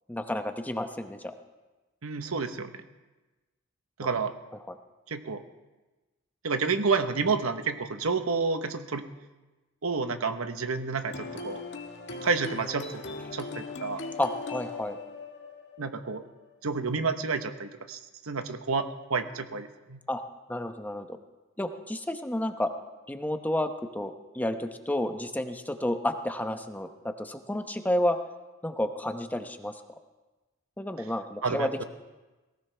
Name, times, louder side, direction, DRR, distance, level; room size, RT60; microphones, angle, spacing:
voice 1, 0.1-1.2 4.7-4.8 14.2-15.0 20.1-20.2 20.5-21.2 21.6-22.7 23.1-28.2 28.6-29.7 30.8-31.8, left 1 dB, 10° left, 7 dB, 0.9 m, -31 dB
voice 2, 2.0-2.8 4.0-4.3 5.1-5.4 6.4-9.0 9.8-11.6 12.2-13.0 13.3-14.0 15.8-16.2 16.6-20.0 31.4-31.8, right 4 dB, 75° right, 8 dB, 1.0 m, -30 dB
sound 1, 11.0-16.6, left 3 dB, 60° left, 1.6 m, -40 dB
19.0 x 17.0 x 3.4 m, 1.2 s
head